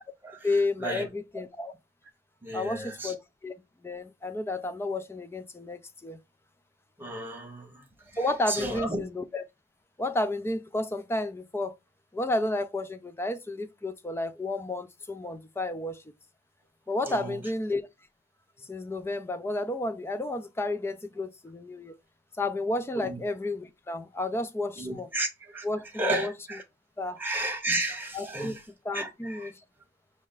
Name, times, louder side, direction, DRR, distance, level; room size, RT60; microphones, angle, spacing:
voice 1, 0.4-1.7 2.5-3.2 3.4-3.5 3.8-6.2 8.2-9.4 10.0-11.7 12.1-16.0 16.9-17.8 18.7-21.9 22.4-25.1 25.6-26.3 27.0-27.2 28.1-28.6 28.8-29.5, left 2 dB, 15° left, 0.3 m, -31 dB
voice 2, 2.4-3.1 7.0-7.7 8.5-9.0 17.1-17.4 23.0-23.2 24.8-25.3 25.5-25.6 26.0-26.6 27.2-28.6 28.9-29.5, right 1 dB, 10° right, 1.1 m, -32 dB
5.2 x 2.4 x 3.7 m
head